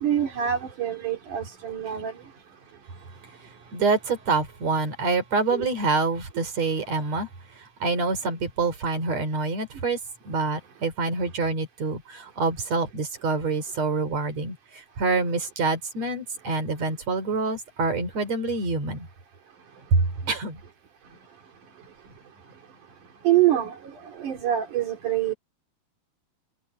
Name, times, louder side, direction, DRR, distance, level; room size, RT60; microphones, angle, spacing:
voice 1, 0.0-2.1 5.5-5.7 23.2-25.3, right 11 dB, 80° right, 4.3 m, -25 dB
voice 2, 3.7-7.3 7.8-10.0 10.3-19.1 19.9-20.6, right 3 dB, 60° right, 5.7 m, -26 dB
omnidirectional pair, 3.5 m